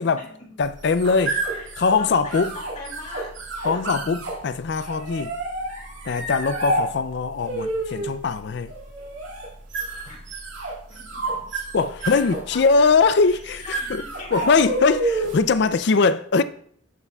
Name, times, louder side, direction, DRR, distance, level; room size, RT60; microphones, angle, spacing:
voice 1, 0.0-0.5 1.5-1.7 2.0-3.4 3.6-4.0 6.6-6.8 10.1-10.3 10.9-11.4 12.0-13.0 13.2-14.7, left 3 dB, 35° left, 2.2 m, -41 dB
voice 2, 0.6-1.4 1.8-2.5 3.6-5.3 6.0-8.7 11.7-14.0 14.3-16.4, left 4 dB, 55° left, 0.4 m, -21 dB
sound 1, 0.6-15.5, right 2 dB, 65° right, 2.4 m, -30 dB
11.0 x 8.2 x 2.3 m
head